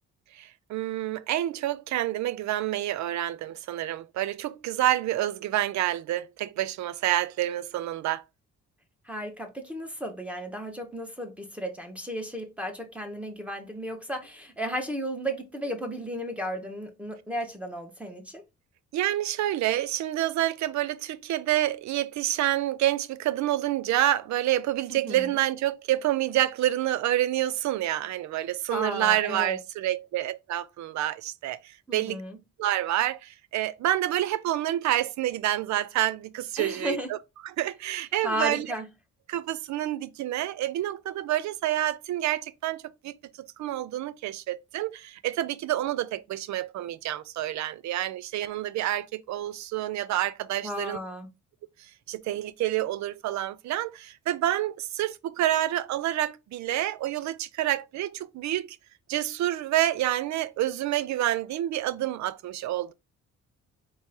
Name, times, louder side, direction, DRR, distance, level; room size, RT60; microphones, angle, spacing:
voice 1, 0.3-8.2 18.9-31.6 31.9-32.2 32.6-37.2 37.4-38.7 39.3-43.2 43.6-51.0 52.1-58.8 59.1-62.9, right 13 dB, 70° right, 0.5 m, -28 dB
voice 2, 9.1-18.4 24.9-25.3 28.7-29.6 31.9-32.4 36.6-37.1 38.2-38.9 50.6-51.3, equal, 5° right, 1.2 m, -34 dB
4.2 x 3.0 x 3.6 m
cardioid pair, 90°, 30 cm